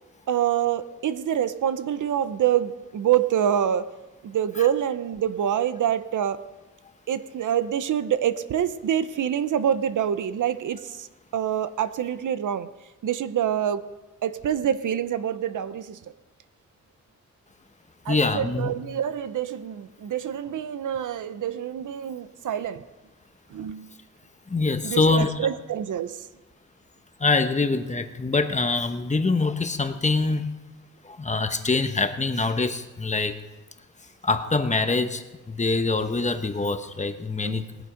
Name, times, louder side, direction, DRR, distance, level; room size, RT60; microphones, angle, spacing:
voice 1, 0.3-3.9 4.2-6.5 7.1-11.1 11.3-12.7 13.0-13.9 14.2-16.0 18.0-22.8 23.5-23.9 24.8-26.3 37.4-37.7, right 10 dB, 80° right, 13 dB, 0.8 m, -26 dB
voice 2, 18.1-18.7 24.5-25.5 27.2-30.5 31.0-33.4 34.2-37.7, left 3 dB, 25° left, 8 dB, 1.0 m, -24 dB
20.0 x 7.9 x 5.1 m, 1.1 s
wide cardioid pair, 105°, 30 cm